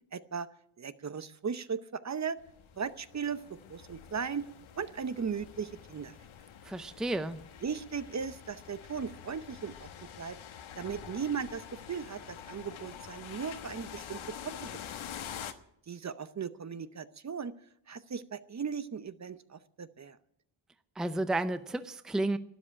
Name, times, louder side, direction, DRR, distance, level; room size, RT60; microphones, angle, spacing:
voice 1, 0.1-0.5 0.8-2.4 2.8-3.4 3.7-4.5 4.8-6.1 7.6-9.9 10.2-10.4 10.8-14.2 14.4-15.0 15.9-17.5 17.9-20.2, right 6 dB, 35° right, 13 dB, 0.8 m, -37 dB
sound 1, 2.4-15.5, left 9 dB, 75° left, 1.3 m, -47 dB
voice 2, 6.6-7.4 21.0-22.4, right 2 dB, ahead, 11 dB, 0.6 m, -32 dB
12.5 x 10.0 x 9.8 m, 0.74 s
cardioid pair, 95°, 49 cm